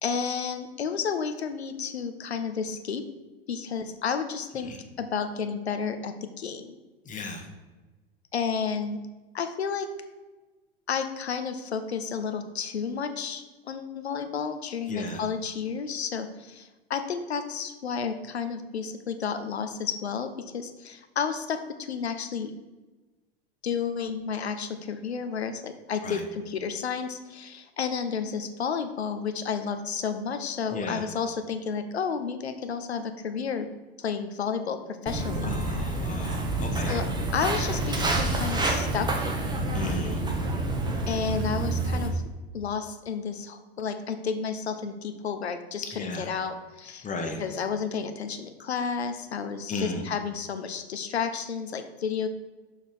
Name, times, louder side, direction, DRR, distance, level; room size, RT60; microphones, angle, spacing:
voice 1, 0.0-3.0 3.5-4.7 5.0-6.8 8.3-9.0 9.3-9.9 10.9-21.6 21.9-22.5 23.6-33.7 34.0-35.5 36.7-37.0 37.3-39.3 41.1-42.2 42.5-47.1 47.4-52.3, left 6 dB, 80° left, 9 dB, 0.8 m, -31 dB
voice 2, 7.0-7.5 14.9-15.2 26.0-26.2 30.7-31.0 35.4-37.0 39.7-40.2 45.9-46.3 47.0-47.4 49.7-50.0, left 2 dB, 25° left, 3 dB, 1.3 m, -35 dB
Walk footsteps, 35.1-42.1, right 2 dB, 15° right, 1.4 m, -28 dB
6.4 x 5.8 x 4.6 m, 1.2 s
figure-of-eight pair, 90°, 32 cm